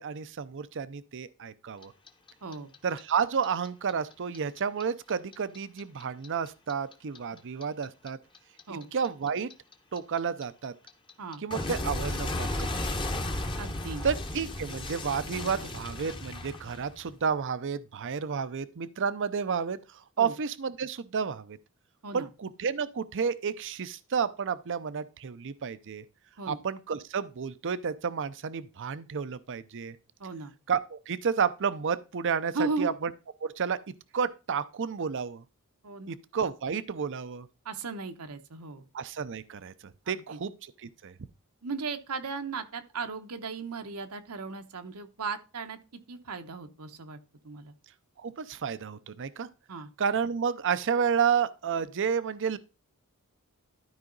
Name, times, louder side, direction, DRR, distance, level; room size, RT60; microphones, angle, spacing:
voice 1, 0.0-1.9 2.8-8.2 8.9-9.5 9.9-10.7 11.4-13.3 14.0-21.6 22.1-26.0 26.5-30.0 30.7-33.1 33.4-33.8 34.1-35.4 36.1-37.5 38.9-41.1 48.2-49.5 50.0-52.6, right 6 dB, 55° right, 0.6 m, -31 dB
Clock, 1.8-4.8 5.1-8.1 8.3-17.2, left 1 dB, 20° left, 1.0 m, -34 dB
voice 2, 2.4-2.7 8.7-8.9 11.2-11.4 13.6-14.0 20.2-20.3 22.0-22.3 26.4-26.6 30.2-30.5 32.5-32.9 35.8-36.2 37.6-38.9 40.0-40.4 41.6-47.2 47.4-47.7 49.7-49.9, right 4 dB, 80° right, 1.0 m, -36 dB
12.5 x 4.8 x 3.9 m
head